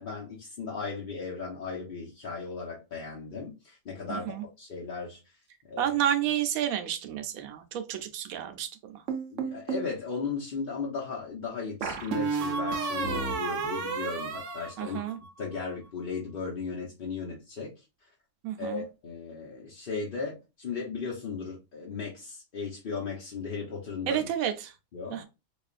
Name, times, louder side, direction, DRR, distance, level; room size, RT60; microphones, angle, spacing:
voice 1, 0.0-5.2 5.7-5.9 9.3-15.0 15.4-17.8 18.6-24.3 24.9-25.2, left 5 dB, 45° left, 0.9 m, -36 dB
voice 2, 4.1-4.4 5.8-9.0 14.8-15.2 18.4-18.8 24.1-24.7 25.1-25.3, right 10 dB, 90° right, 1.0 m, -30 dB
sound 1, 9.1-9.9 11.8-15.4, right 4 dB, 65° right, 1.0 m, -32 dB
5.1 x 2.4 x 2.4 m
omnidirectional pair, 1.4 m